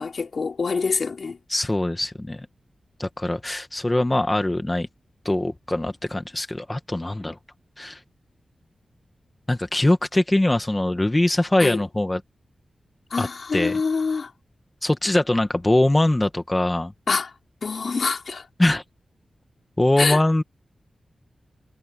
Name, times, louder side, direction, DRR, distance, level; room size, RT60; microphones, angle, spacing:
voice 1, 0.0-1.4 11.6-11.8 13.1-14.3 17.1-17.3 17.6-18.5 20.0-20.2, left 4 dB, 60° left, 3.5 m, -25 dB
voice 2, 1.5-2.5 3.0-4.9 5.2-7.4 7.8-8.0 9.5-12.2 13.2-13.3 13.5-13.8 14.8-16.9 18.6-18.8 19.8-20.4, left 1 dB, 20° left, 1.6 m, -22 dB
wide cardioid pair, 100°, 0 cm